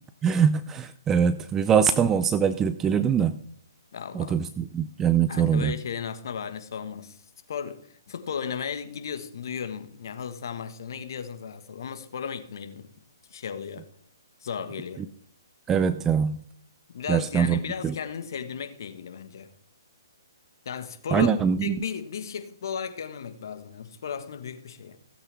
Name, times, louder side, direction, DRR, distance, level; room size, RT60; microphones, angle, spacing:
voice 1, 0.2-3.4 4.1-5.7 15.7-16.4 17.1-17.6 17.8-17.9 21.1-21.8, right 7 dB, 15° right, 0.5 m, -23 dB
voice 2, 3.9-4.4 5.3-7.2 7.5-12.9 13.3-13.9 14.4-15.1 16.9-19.5 20.6-25.0, left 7 dB, 60° left, 1.6 m, -35 dB
17.0 x 8.3 x 3.5 m
hypercardioid pair, 145°, 2 cm